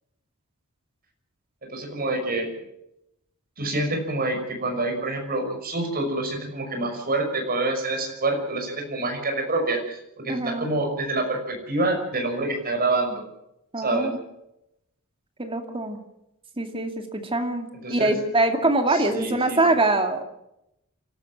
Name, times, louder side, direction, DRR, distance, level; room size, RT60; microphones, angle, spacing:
voice 1, 1.7-2.5 3.6-13.2 13.8-14.1 17.7-18.2 18.9-19.8, right 2 dB, 45° right, 3 dB, 5.9 m, -27 dB
voice 2, 10.3-10.7 13.7-14.2 15.4-16.0 16.6-20.2, right 2 dB, 25° right, 5 dB, 2.5 m, -24 dB
28.5 x 13.0 x 7.5 m, 0.83 s
head